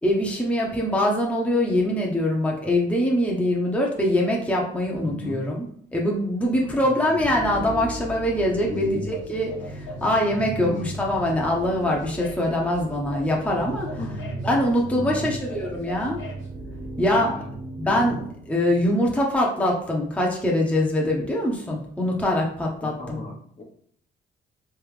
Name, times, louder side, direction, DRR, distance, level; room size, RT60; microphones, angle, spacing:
voice 1, 0.0-5.6 5.9-13.9 14.4-16.2 17.0-17.3 17.8-18.2 18.5-23.2, left 1 dB, 5° left, -2 dB, 0.9 m, -23 dB
voice 2, 5.0-5.4 6.5-7.3 8.6-9.1 10.7-11.0 14.0-14.4 14.9-15.3 17.1-17.5 17.8-18.1 22.8-23.6, left 2 dB, 40° left, 0 dB, 1.1 m, -35 dB
sound 1, 7.2-19.1, right 2 dB, 40° right, 1.2 m, -37 dB
sound 2, 8.6-16.5, left 2 dB, 75° left, 1.2 m, -42 dB
3.4 x 3.0 x 3.3 m, 0.62 s
supercardioid pair, 70°, 20 cm